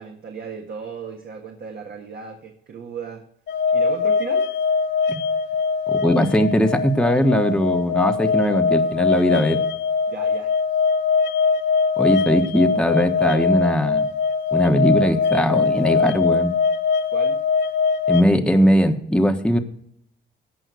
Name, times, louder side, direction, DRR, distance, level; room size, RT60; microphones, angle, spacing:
voice 1, 0.0-3.2 3.7-4.5 10.1-10.5 17.1-17.4, right 6 dB, 55° right, 2 dB, 1.6 m, -35 dB
sound 1, 3.5-18.2, left 5 dB, 60° left, 0.7 m, -22 dB
voice 2, 5.9-9.6 12.0-14.1 14.5-16.5 18.1-19.6, equal, 5° left, 5 dB, 1.3 m, -19 dB
15.5 x 5.5 x 6.3 m, 0.69 s
cardioid pair, 90°, 20 cm